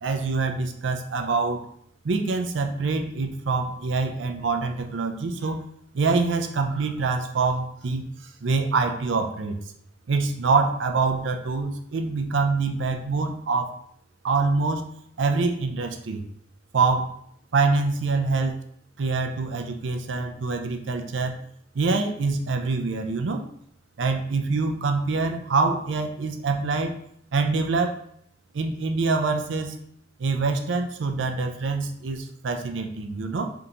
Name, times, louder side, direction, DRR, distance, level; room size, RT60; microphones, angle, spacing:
voice 1, 0.0-1.6 2.0-5.6 5.9-8.1 8.4-9.6 10.1-13.8 14.2-14.9 15.2-16.2 16.7-17.1 17.5-18.6 19.0-21.4 21.7-23.4 24.0-26.9 27.3-28.0 28.5-29.7 30.2-33.5, right 4 dB, 80° right, 5 dB, 0.5 m, -25 dB
3.9 x 3.5 x 2.8 m, 0.69 s
head